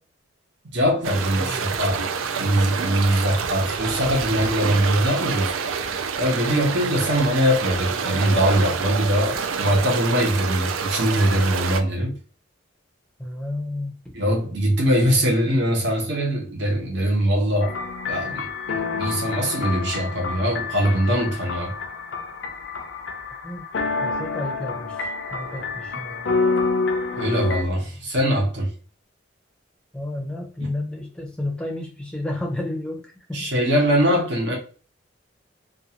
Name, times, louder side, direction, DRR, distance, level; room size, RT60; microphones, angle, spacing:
voice 1, 0.7-2.1 2.4-5.5 6.2-12.1 14.1-17.7 18.1-21.7 27.1-28.7 33.3-34.6, equal, 65° right, 1.0 m, -22 dB
sound 1, 1.0-11.8, right 6 dB, 90° right, 0.4 m, -27 dB
voice 2, 1.4-1.7 6.8-6.9 13.2-14.1 23.4-23.6 24.0-26.4 29.9-33.5, left 1 dB, 5° left, 0.6 m, -32 dB
sound 2, 17.6-27.6, left 4 dB, 65° left, 0.5 m, -28 dB
2.6 x 2.4 x 2.8 m
head